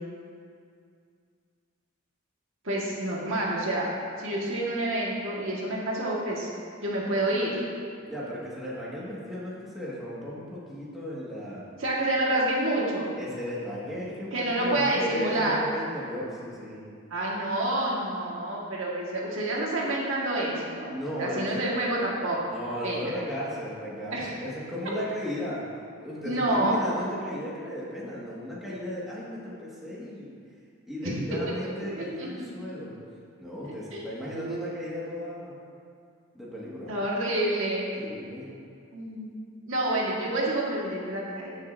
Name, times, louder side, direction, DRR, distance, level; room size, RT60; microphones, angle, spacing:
voice 1, 2.6-3.9 4.2-6.5 6.8-7.6 11.8-13.1 14.3-15.6 17.1-22.4 22.8-23.1 24.1-24.3 24.8-25.0 26.2-26.8 31.0-31.2 31.5-31.6 32.0-32.5 33.6-34.6 36.9-37.9 38.9-39.3 39.7-41.5, right 1 dB, 65° right, -4 dB, 1.7 m, -28 dB
voice 2, 8.0-11.7 13.2-16.8 20.9-21.7 22.5-25.6 26.0-30.3 30.9-33.0 33.4-35.6 36.3-36.9 38.0-38.5, equal, ahead, -8 dB, 1.8 m, -35 dB
16.5 x 6.7 x 2.7 m, 2.3 s
head